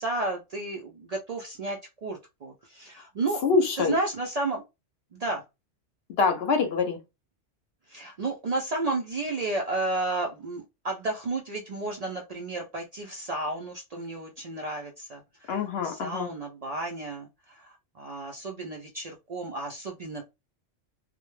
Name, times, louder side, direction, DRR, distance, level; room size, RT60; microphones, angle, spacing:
voice 1, 0.0-3.4 3.8-4.6 5.1-5.4 7.9-20.2, right 2 dB, 70° right, 0.3 m, -32 dB
voice 2, 3.4-3.9 6.2-7.0 15.5-16.3, left 5 dB, 65° left, 0.8 m, -25 dB
2.1 x 2.1 x 3.0 m
omnidirectional pair, 1.2 m